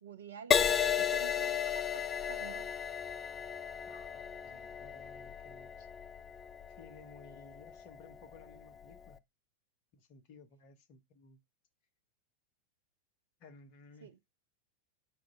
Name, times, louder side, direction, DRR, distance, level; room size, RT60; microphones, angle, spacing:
voice 1, 0.0-2.7 14.0-14.2, right 7 dB, 65° right, 0.4 m, -49 dB
Crash cymbal, 0.5-8.1 8.8-9.1, left 8 dB, 25° left, 0.3 m, -34 dB
voice 2, 3.9-5.9 6.8-9.2 9.9-11.4 13.4-14.1, left 4 dB, 45° left, 0.8 m, -57 dB
4.5 x 2.5 x 3.7 m
figure-of-eight pair, 90°, 0 cm